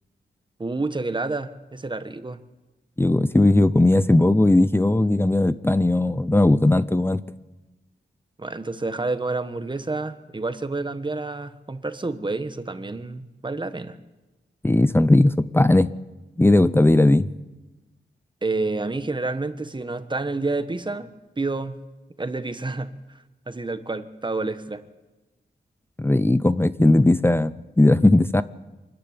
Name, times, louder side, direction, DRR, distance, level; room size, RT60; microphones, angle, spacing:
voice 1, 0.6-2.4 8.4-14.0 18.4-21.1 21.4-21.8 22.2-22.9 23.5-24.8, right 3 dB, 25° right, 10 dB, 1.3 m, -29 dB
voice 2, 3.0-7.2 14.6-15.9 16.4-17.3 26.0-28.4, left 2 dB, 10° left, 14 dB, 0.6 m, -18 dB
25.0 x 14.0 x 9.8 m, 1.1 s
wide cardioid pair, 100°, 19 cm